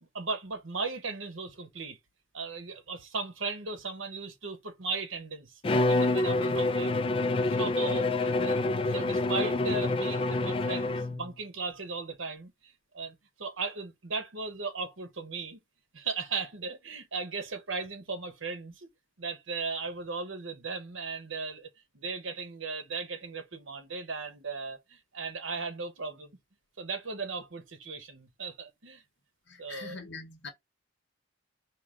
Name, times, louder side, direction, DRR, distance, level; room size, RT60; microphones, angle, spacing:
voice 1, 0.1-2.0 2.3-5.5 5.9-6.9 7.5-15.6 15.9-18.9 19.2-21.7 21.9-26.4 26.8-29.0 29.6-30.0, right 4 dB, 80° right, 1.0 m, -37 dB
Bowed string instrument, 5.6-11.3, left 2 dB, 25° left, 0.3 m, -27 dB
voice 2, 29.5-30.5, left 3 dB, 60° left, 1.1 m, -43 dB
4.8 x 2.5 x 3.7 m
head